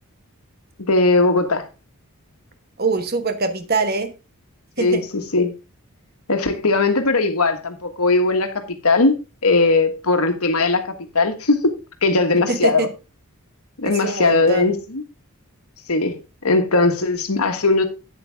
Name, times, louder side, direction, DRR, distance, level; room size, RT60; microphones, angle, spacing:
voice 1, 0.9-1.7 4.8-5.5 6.3-10.8 11.1-11.7 12.0-12.9 13.8-15.0 15.9-17.9, left 3 dB, 80° left, 1.5 m, -19 dB
voice 2, 2.8-4.1 4.8-5.0 12.5-12.9 13.9-14.7, right 3 dB, 45° right, 1.2 m, -23 dB
8.7 x 8.3 x 3.5 m
head